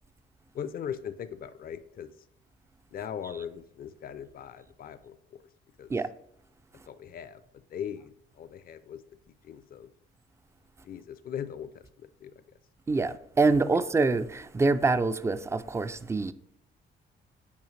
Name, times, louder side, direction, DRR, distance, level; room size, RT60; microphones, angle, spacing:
voice 1, 0.5-2.3 2.9-5.4 5.8-5.9 6.9-9.9 10.8-12.4 13.7-13.8, left 8 dB, 45° left, 0.4 m, -40 dB
voice 2, 12.9-16.3, right 3 dB, 15° right, 0.3 m, -25 dB
7.3 x 4.9 x 3.2 m
cardioid pair, 90°, 20 cm